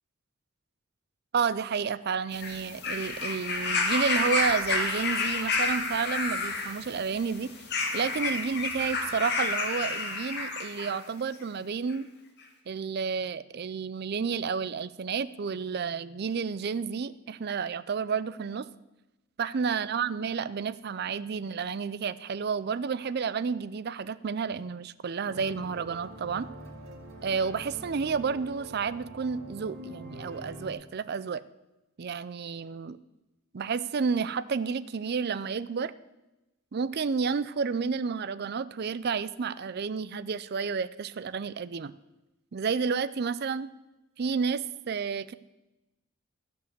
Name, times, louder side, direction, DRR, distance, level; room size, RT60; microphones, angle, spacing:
voice 1, 1.3-7.5 7.9-12.1 12.7-18.7 19.4-26.5 27.2-31.4 32.0-33.0 33.5-35.9 36.7-41.9 42.5-43.7 44.2-45.3, right 5 dB, 50° right, 16 dB, 0.4 m, -31 dB
sound 1, 2.3-11.0 11.9-12.0, left 3 dB, 55° left, 1.8 m, -30 dB
sound 2, 25.2-30.7, right 1 dB, 80° right, 2.8 m, -45 dB
14.5 x 5.5 x 7.9 m, 0.99 s
head